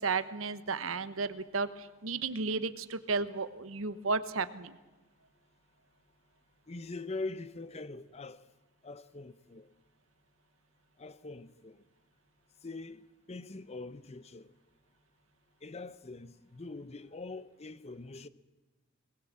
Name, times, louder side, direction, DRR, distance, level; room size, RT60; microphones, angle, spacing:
voice 1, 0.0-4.8, right 4 dB, 75° right, 1.1 m, -33 dB
voice 2, 6.7-8.4 8.8-9.7 11.0-11.8 12.6-14.5 15.6-18.3, left 3 dB, 30° left, 0.7 m, -43 dB
21.0 x 20.0 x 7.5 m
head